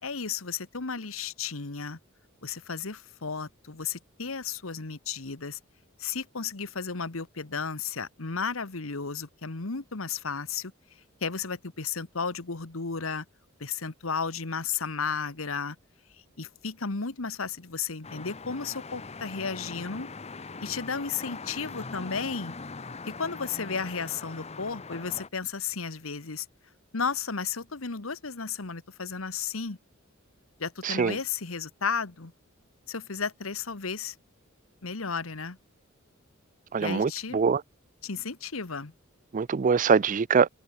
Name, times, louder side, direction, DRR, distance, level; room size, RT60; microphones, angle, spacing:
voice 1, 0.0-2.0 2.4-5.6 6.0-10.7 11.2-13.2 13.6-15.8 16.4-20.1 20.6-22.5 23.1-26.4 26.9-29.8 30.6-32.3 32.9-34.1 34.8-35.6 36.8-37.4 38.0-38.9, left 5 dB, 80° left, 1.5 m, -33 dB
sound 1, 18.0-25.3, left 4 dB, 30° left, 1.0 m, -41 dB
voice 2, 30.8-31.2 36.7-37.6 39.3-40.5, right 5 dB, 40° right, 0.4 m, -23 dB
head